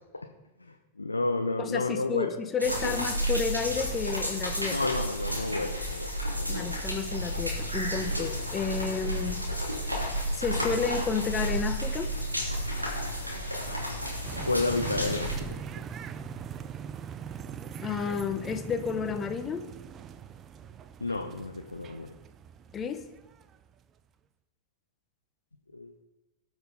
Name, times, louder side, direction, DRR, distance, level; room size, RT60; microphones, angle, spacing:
voice 1, 0.6-2.3 4.7-6.1 6.3-6.6 14.5-15.6 21.0-22.1 25.7-25.9, left 2 dB, 80° left, 4 dB, 0.7 m, -31 dB
voice 2, 1.6-4.9 6.5-9.4 10.3-12.1 17.8-19.6 22.7-23.0, left 6 dB, 25° left, 9 dB, 0.9 m, -31 dB
sound 1, 2.6-15.3, equal, 85° right, 2.7 m, -31 dB
sound 2, 14.2-23.7, right 7 dB, 30° right, 0.5 m, -41 dB
18.5 x 6.2 x 4.1 m, 1.1 s
figure-of-eight pair, 90°, 0 cm